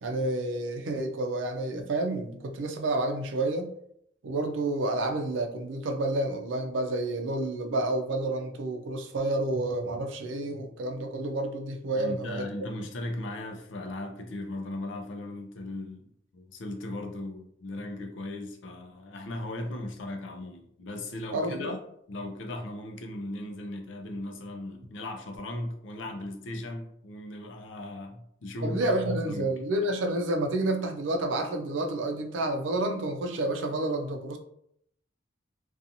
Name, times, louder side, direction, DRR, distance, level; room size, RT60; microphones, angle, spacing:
voice 1, 0.0-3.7 4.2-12.5 21.3-21.7 28.6-34.4, right 2 dB, 90° right, 4 dB, 0.4 m, -29 dB
voice 2, 11.9-21.8 22.1-29.5, left 1 dB, 85° left, 3 dB, 0.5 m, -37 dB
2.7 x 2.3 x 2.6 m, 0.72 s
head